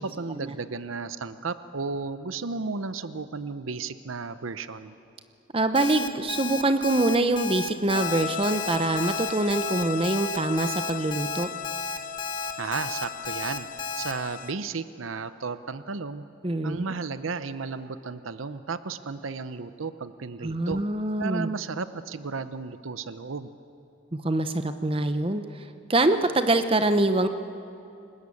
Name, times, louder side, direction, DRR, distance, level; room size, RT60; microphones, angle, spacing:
voice 1, 0.0-4.9 12.6-16.3 16.6-20.8 21.2-23.5, right 4 dB, 90° right, 12 dB, 0.8 m, -34 dB
voice 2, 5.5-11.5 16.4-16.8 20.4-21.5 24.2-27.3, right 2 dB, 25° right, 9 dB, 0.8 m, -24 dB
Alarm, 5.7-14.1, left 4 dB, 20° left, 1.7 m, -33 dB
sound 1, 7.9-14.5, left 8 dB, 40° left, 0.7 m, -36 dB
30.0 x 19.5 x 8.5 m, 2.7 s
head